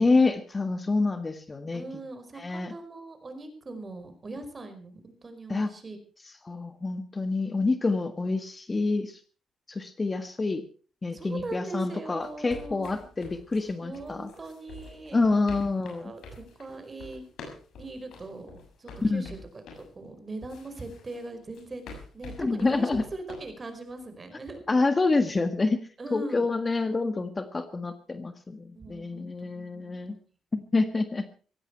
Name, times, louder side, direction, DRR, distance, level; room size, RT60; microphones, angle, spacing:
voice 1, 0.0-1.8 2.4-2.7 5.5-5.7 6.4-9.2 9.7-10.6 11.0-14.3 15.1-16.1 19.0-19.3 22.4-23.0 24.7-30.2 30.5-31.3, left 3 dB, 25° left, 9 dB, 1.6 m, -27 dB
voice 2, 1.7-6.0 11.1-13.1 13.8-15.6 15.9-17.3 17.8-24.6 26.0-26.5 28.7-30.2, right 2 dB, 30° right, 8 dB, 4.9 m, -41 dB
sound 1, 12.2-19.9 20.5-23.5, left 3 dB, 70° left, 6.7 m, -46 dB
17.0 x 15.5 x 4.6 m, 0.38 s
cardioid pair, 90°, 0 cm